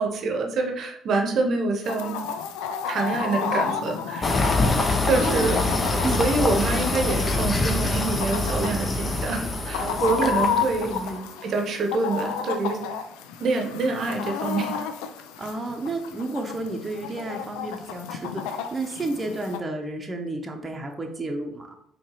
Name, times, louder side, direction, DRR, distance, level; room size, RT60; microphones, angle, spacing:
voice 1, 0.0-2.2 2.9-4.7 5.0-5.6 5.9-10.9 11.4-12.8 13.4-14.8, right 3 dB, 60° right, 3 dB, 0.8 m, -26 dB
Chicken rooster, 1.8-19.6, left 7 dB, 80° left, 0.3 m, -32 dB
sound 1, 4.2-11.1, left 2 dB, 30° left, 0.6 m, -25 dB
voice 2, 9.8-10.3 10.8-11.3 15.4-21.7, right 2 dB, 30° right, 2 dB, 0.7 m, -31 dB
4.6 x 2.9 x 2.9 m, 0.72 s
hypercardioid pair, 55°, 0 cm